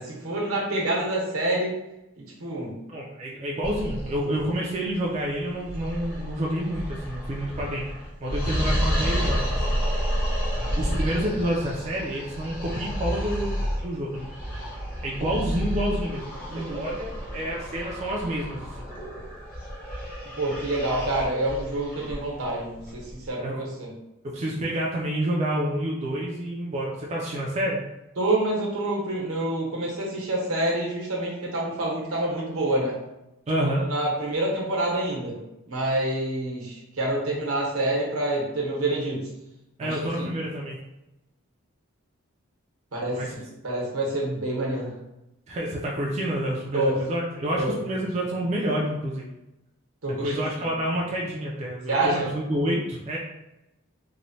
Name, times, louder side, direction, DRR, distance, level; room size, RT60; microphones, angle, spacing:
voice 1, 0.0-1.8 2.2-2.8 16.5-16.8 20.4-24.0 28.2-33.0 33.9-35.4 35.7-39.3 39.8-40.3 42.9-45.0 46.7-47.0 47.6-47.8 50.0-50.4 51.9-52.3, right 1 dB, 80° right, -3 dB, 0.9 m, -27 dB
voice 2, 2.9-10.2 10.6-14.2 15.0-18.8 23.4-23.6 24.2-27.8 33.5-33.8 39.8-40.8 43.1-43.3 45.5-49.3 50.1-53.2, right 1 dB, 30° right, -3 dB, 0.3 m, -29 dB
sound 1, 3.6-23.3, equal, 45° left, 0.7 m, -31 dB
3.0 x 2.1 x 2.7 m, 0.93 s
head